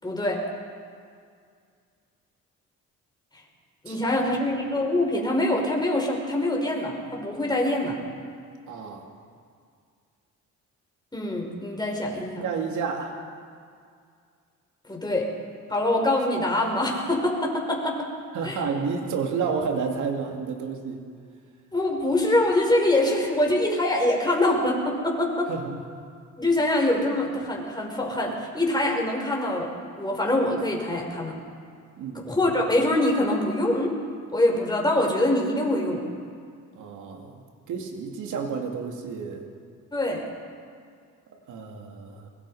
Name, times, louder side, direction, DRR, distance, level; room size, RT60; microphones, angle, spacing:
voice 1, 0.0-0.4 3.8-8.0 11.1-12.4 14.9-15.3 15.7-18.1 18.4-18.6 21.7-25.5 26.4-29.7 30.0-31.4 32.3-33.9 34.3-36.0 39.9-40.2, left 1 dB, 15° left, 0 dB, 5.3 m, -24 dB
voice 2, 8.7-9.1 12.4-13.3 18.3-21.0 25.5-25.8 32.0-32.3 36.7-39.5 41.3-42.3, right 5 dB, 80° right, 2 dB, 2.8 m, -31 dB
23.0 x 22.5 x 5.1 m, 2.2 s
cardioid pair, 90°, 30 cm